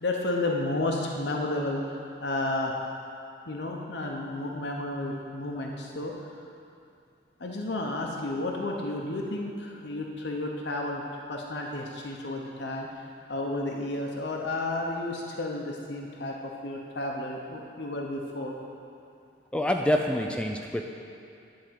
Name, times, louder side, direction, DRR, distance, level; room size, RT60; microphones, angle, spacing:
voice 1, 0.0-1.8 2.2-2.8 3.5-6.1 7.4-11.0 11.3-12.9 13.3-18.5, left 2 dB, 70° left, 0 dB, 0.9 m, -32 dB
voice 2, 19.5-20.8, equal, 5° left, 2 dB, 0.4 m, -26 dB
10.5 x 4.9 x 7.5 m, 2.5 s
head